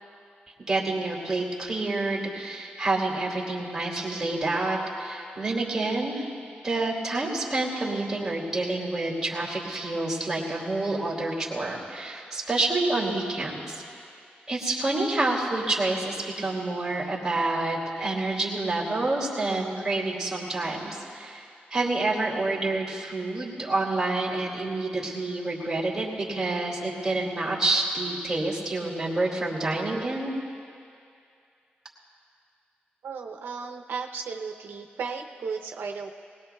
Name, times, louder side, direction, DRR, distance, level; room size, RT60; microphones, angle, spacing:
voice 1, 0.6-6.3 6.6-13.8 14.5-21.4 21.7-30.3, right 2 dB, 15° right, -3 dB, 2.4 m, -28 dB
voice 2, 33.0-36.1, right 5 dB, 90° right, 3 dB, 0.6 m, -35 dB
20.0 x 19.5 x 2.3 m, 2.4 s
wide cardioid pair, 155°, 4 cm